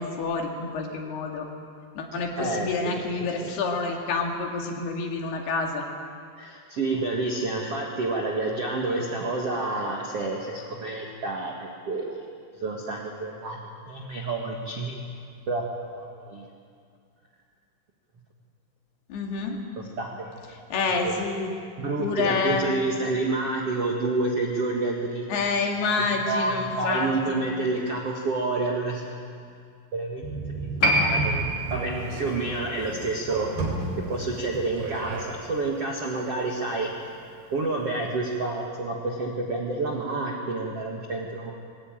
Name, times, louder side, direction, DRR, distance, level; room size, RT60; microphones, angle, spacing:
voice 1, 0.0-1.5 2.0-5.9 19.1-19.6 20.7-21.5 22.0-22.7 25.3-27.4, left 4 dB, 60° left, 2 dB, 3.7 m, -28 dB
voice 2, 2.1-3.5 6.4-12.2 12.6-13.6 13.9-15.0 15.5-15.6 15.9-16.5 19.7-20.3 20.6-20.7 21.0-21.2 21.8-25.3 26.1-29.2 29.9-30.2 30.6-31.4 31.7-33.5 34.1-36.9 37.5-41.5, right 2 dB, 70° right, -1 dB, 1.4 m, -29 dB
sound 1, 30.2-35.2, right 3 dB, 50° right, 4.9 m, -33 dB
Piano, 30.8-37.8 38.0-38.1, equal, 35° left, 3.1 m, -30 dB
22.0 x 18.5 x 9.0 m, 2.3 s
omnidirectional pair, 5.9 m